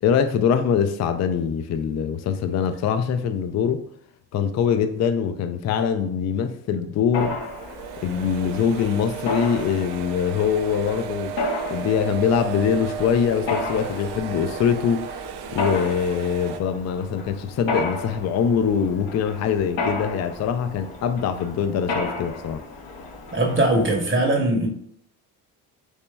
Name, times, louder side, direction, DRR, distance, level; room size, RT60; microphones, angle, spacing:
voice 1, 0.0-3.8 4.3-7.4 8.0-11.4 11.7-15.0 15.5-22.6, left 7 dB, 35° left, 0.4 m, -23 dB
Mechanisms, 7.1-23.9, left 2 dB, 60° left, 1.0 m, -33 dB
sound 1, 7.4-16.6, right 9 dB, 55° right, 0.5 m, -35 dB
voice 2, 23.3-24.7, right 1 dB, 25° right, 0.9 m, -20 dB
4.4 x 2.9 x 2.2 m
hypercardioid pair, 55°, 49 cm